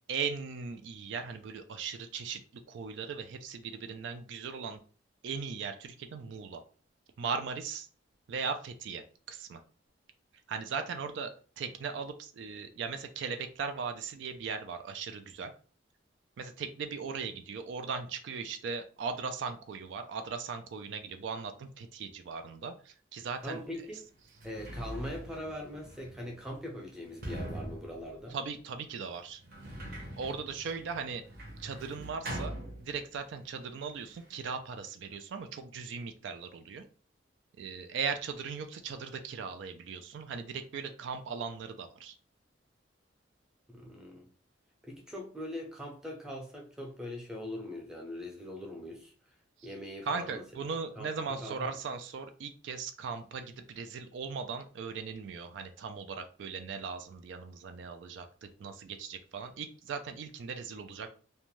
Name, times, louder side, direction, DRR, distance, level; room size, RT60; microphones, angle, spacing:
voice 1, 0.1-4.8 5.2-6.6 7.2-7.9 8.3-9.6 10.5-15.5 16.4-23.6 28.3-29.4 30.2-31.2 31.6-36.9 37.6-42.2 50.0-61.1, right 5 dB, 70° right, 0.3 m, -38 dB
voice 2, 23.4-24.0 24.4-28.4 43.7-44.3 44.8-49.1 49.6-50.4 51.0-51.1 51.4-51.7, left 1 dB, 5° right, 0.6 m, -41 dB
Sliding door, 23.5-23.6 24.2-33.3 33.6-34.4, right 1 dB, 55° right, 0.7 m, -43 dB
2.5 x 2.2 x 3.0 m
head